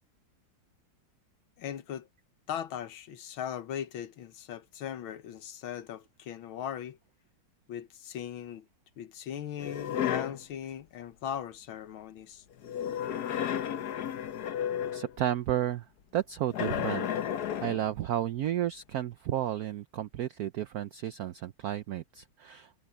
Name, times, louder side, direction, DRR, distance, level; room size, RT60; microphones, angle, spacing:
voice 1, 1.6-2.1 2.5-7.0 7.7-8.6 9.0-12.4, left 9 dB, 75° left, 1.8 m, -39 dB
sound 1, 9.6-10.4 12.6-15.2 16.5-17.9, left 9 dB, 60° left, 1.2 m, -32 dB
voice 2, 14.9-15.9 16.1-17.1 17.6-22.8, right 11 dB, 90° right, 0.8 m, -32 dB
omnidirectional pair, 2.3 m